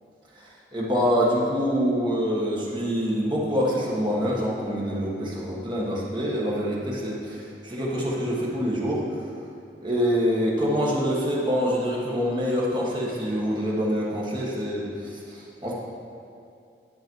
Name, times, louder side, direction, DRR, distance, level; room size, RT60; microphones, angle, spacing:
voice 1, 0.4-9.0 9.8-15.7, equal, 25° right, -5 dB, 1.5 m, -26 dB
11.0 x 6.2 x 4.6 m, 2.5 s
head